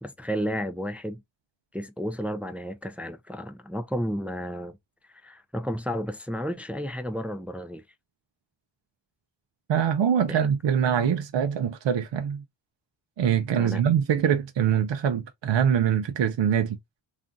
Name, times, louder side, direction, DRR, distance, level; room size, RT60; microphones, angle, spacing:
voice 1, 0.0-1.2 1.7-4.8 5.1-7.8 10.3-10.5 13.5-13.8, equal, 5° right, 0.3 m, -32 dB
voice 2, 9.7-12.4 13.2-16.8, right 8 dB, 65° right, 0.6 m, -24 dB
2.5 x 2.2 x 3.7 m
wide cardioid pair, 80°, 48 cm